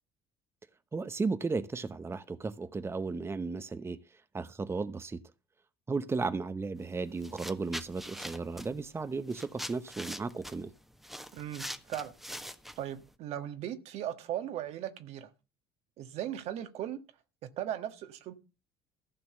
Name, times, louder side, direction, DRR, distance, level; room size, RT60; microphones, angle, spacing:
voice 1, 0.9-5.2 5.9-10.7, right 4 dB, 20° right, 0.9 m, -35 dB
sound 1, 6.8-6.9 7.2-13.1, equal, ahead, 1.3 m, -43 dB
voice 2, 11.3-12.1 12.8-15.3 16.0-17.0 17.4-18.3, right 11 dB, 60° right, 1.6 m, -38 dB
14.5 x 6.1 x 6.9 m
hypercardioid pair, 60°, 12 cm